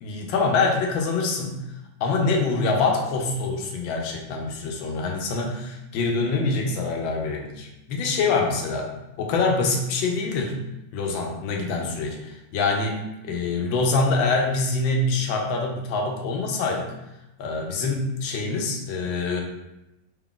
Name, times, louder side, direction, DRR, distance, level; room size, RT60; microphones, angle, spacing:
voice 1, 0.0-1.6 2.0-8.9 9.2-10.5 10.9-16.9 17.4-19.4, left 3 dB, 85° left, 1 dB, 1.4 m, -25 dB
3.7 x 2.4 x 3.6 m, 0.92 s
omnidirectional pair, 2.0 m